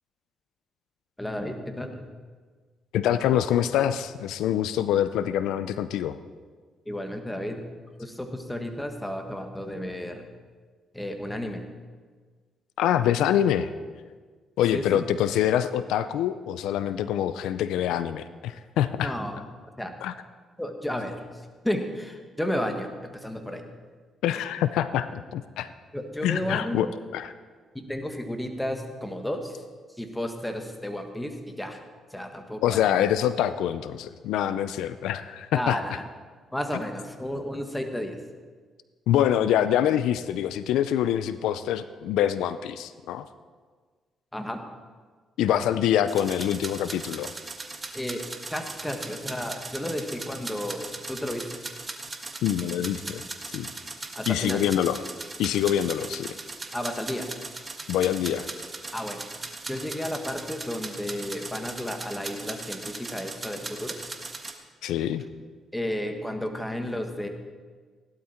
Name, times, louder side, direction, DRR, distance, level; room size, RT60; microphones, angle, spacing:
voice 1, 1.2-2.1 6.8-7.7 8.0-10.3 10.9-11.7 14.7-15.0 19.0-19.4 19.8-20.0 20.6-23.7 25.9-26.9 27.7-29.6 29.9-31.8 32.1-33.0 35.5-36.1 36.5-38.2 44.3-44.6 47.9-51.6 54.1-54.7 56.7-57.3 58.9-59.3 59.7-64.0 65.7-67.3, left 1 dB, 5° left, 5 dB, 1.6 m, -32 dB
voice 2, 2.9-6.2 12.8-13.7 14.6-19.1 20.0-20.1 24.2-25.7 26.2-26.9 27.1-27.3 32.6-35.8 39.1-43.3 45.4-47.3 52.4-53.2 53.5-53.7 54.3-55.0 55.4-56.4 57.9-58.5 64.8-65.2, left 10 dB, 90° left, 13 dB, 0.5 m, -25 dB
sound 1, 46.1-64.5, right 3 dB, 25° right, 1.5 m, -39 dB
16.5 x 11.5 x 4.5 m, 1.5 s
cardioid pair, 90°, 0 cm